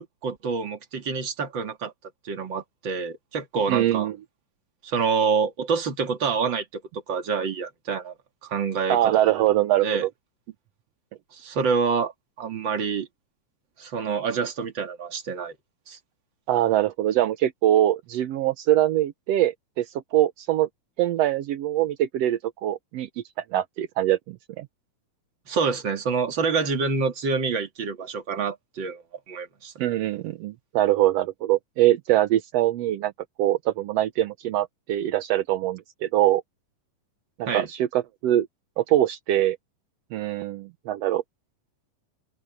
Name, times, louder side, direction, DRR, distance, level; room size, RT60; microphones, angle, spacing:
voice 1, 0.0-1.9 2.2-4.1 4.8-6.8 7.1-8.1 8.4-9.1 9.8-10.0 11.3-12.1 12.4-13.1 13.8-15.5 15.9-16.0 25.5-29.7 37.5-37.7, right 5 dB, 40° right, 2.3 m, -27 dB
voice 2, 3.7-4.2 8.9-10.1 16.5-20.7 21.0-23.2 23.5-24.7 29.8-33.1 33.4-36.4 37.4-38.5 38.8-39.6 40.1-41.2, right 13 dB, 75° right, 1.6 m, -23 dB
open air
omnidirectional pair, 3.8 m